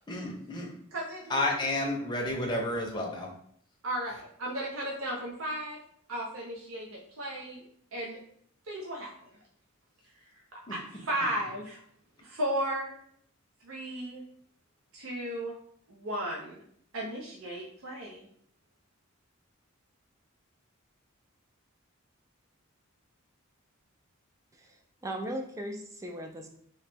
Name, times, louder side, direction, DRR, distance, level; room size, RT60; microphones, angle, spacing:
voice 1, 0.1-0.7 1.3-3.3 10.7-10.8, left 1 dB, 20° left, 0 dB, 0.7 m, -31 dB
voice 2, 0.9-1.4 3.8-5.8 6.1-7.7 7.9-8.2 8.7-9.1 10.7-11.8 12.2-12.9 13.6-14.2 14.9-15.5 15.9-16.6 16.9-18.3, right 1 dB, 65° right, -2 dB, 0.7 m, -35 dB
voice 3, 25.0-26.5, right 1 dB, 15° right, 3 dB, 0.3 m, -37 dB
3.1 x 2.9 x 3.4 m, 0.65 s
head